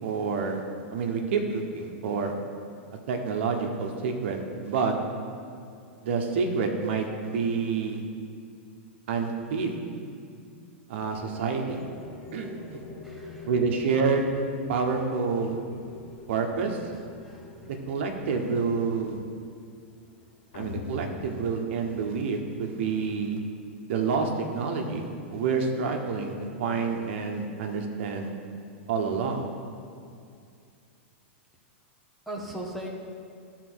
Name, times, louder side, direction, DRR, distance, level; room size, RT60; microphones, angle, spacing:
voice 1, 0.0-0.6 0.9-2.3 3.1-4.9 6.0-8.0 9.1-9.8 10.9-11.8 12.3-12.8 13.5-14.3 14.7-15.6 16.3-16.9 17.6-19.2 20.5-23.4 23.9-26.3 26.6-28.3 28.9-29.4, right 5 dB, 65° right, 3 dB, 1.2 m, -28 dB
sound 1, 11.1-22.7, left 3 dB, 35° left, 1.3 m, -48 dB
voice 2, 13.0-13.5 17.2-17.7 28.2-28.4 32.3-32.9, right 1 dB, ahead, -3 dB, 1.1 m, -39 dB
sound 2, 20.5-22.7, left 2 dB, 80° left, 0.8 m, -41 dB
11.5 x 4.2 x 6.3 m, 2.4 s
hypercardioid pair, 140°, 7 cm